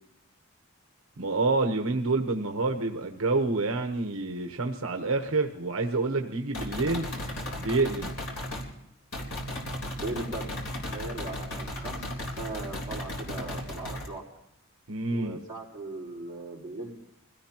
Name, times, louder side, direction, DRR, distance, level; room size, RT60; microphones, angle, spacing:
voice 1, 1.2-7.1 7.6-8.1 14.9-15.4, right 3 dB, 70° right, 3 dB, 1.1 m, -28 dB
sound 1, 6.5-8.7 9.1-14.1, left 1 dB, 85° left, 3.6 m, -35 dB
voice 2, 10.0-10.5 10.9-14.3 15.1-17.0, right 2 dB, 20° right, -4 dB, 4.4 m, -38 dB
24.5 x 17.0 x 3.0 m, 0.80 s
head